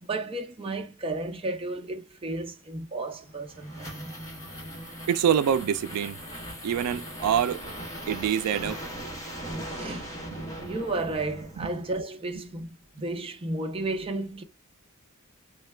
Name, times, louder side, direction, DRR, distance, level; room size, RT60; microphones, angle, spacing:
voice 1, 0.0-4.2 9.8-10.2 10.6-14.4, right 2 dB, 25° right, 0.5 m, -33 dB
sound 1, 3.1-12.0, right 1 dB, 15° left, 0.9 m, -39 dB
voice 2, 5.1-6.2 6.6-7.6 8.1-8.8 10.6-10.7, right 8 dB, 90° right, 0.3 m, -25 dB
3.2 x 2.2 x 3.2 m
head